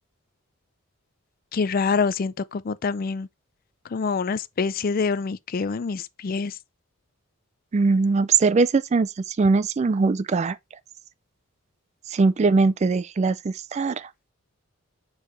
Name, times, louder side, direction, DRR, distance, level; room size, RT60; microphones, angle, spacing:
voice 1, 1.5-3.3 3.9-6.6, left 5 dB, 40° left, 0.4 m, -26 dB
voice 2, 7.7-10.6 12.1-14.1, right 4 dB, 30° right, 0.3 m, -21 dB
6.4 x 4.7 x 3.2 m
head